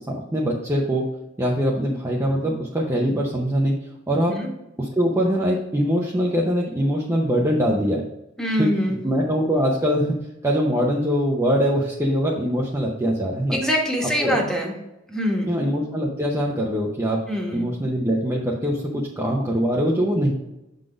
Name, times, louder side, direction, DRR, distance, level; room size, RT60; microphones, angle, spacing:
voice 1, 0.1-1.1 1.4-4.4 4.8-8.0 8.6-8.8 9.0-10.2 10.4-13.6 14.2-14.5 15.5-17.2 17.5-20.3, equal, 15° right, -3 dB, 0.7 m, -23 dB
voice 2, 8.4-9.0 13.5-14.7 15.1-15.6 17.3-17.6, equal, 5° left, 0 dB, 1.2 m, -24 dB
6.4 x 3.9 x 5.0 m, 0.92 s
head